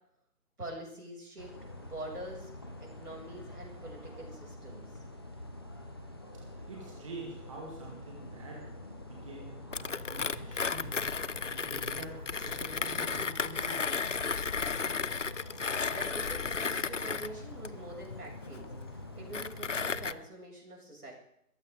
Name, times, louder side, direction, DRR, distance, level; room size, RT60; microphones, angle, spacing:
voice 1, 0.6-4.9 15.9-18.7 18.9-21.1, right 1 dB, 70° right, -2 dB, 7.4 m, -45 dB
sound 1, 1.4-20.1, left 1 dB, 15° left, 1.0 m, -46 dB
voice 2, 6.7-8.6 9.0-9.5 9.8-11.2 11.5-14.0, right 2 dB, 20° right, -2 dB, 2.1 m, -46 dB
Mechanisms, 9.7-20.1, left 5 dB, 55° left, 0.6 m, -34 dB
22.0 x 15.0 x 3.9 m, 0.77 s
figure-of-eight pair, 160°, 46 cm